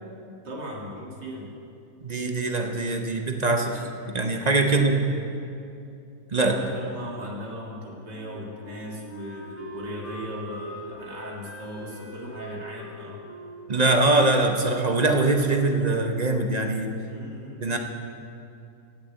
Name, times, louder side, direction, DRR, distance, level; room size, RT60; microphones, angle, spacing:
voice 1, 0.4-1.5 4.6-5.1 6.3-13.2 17.1-17.8, equal, 80° right, -2 dB, 2.8 m, -37 dB
voice 2, 2.0-3.8 4.1-5.0 6.3-6.5 13.7-16.9 17.6-17.8, right 2 dB, 30° right, 4 dB, 0.8 m, -22 dB
Wind instrument woodwind instrument, 8.1-15.6, equal, 75° left, 2.6 m, -43 dB
17.5 x 6.8 x 8.1 m, 2.6 s
omnidirectional pair, 1.8 m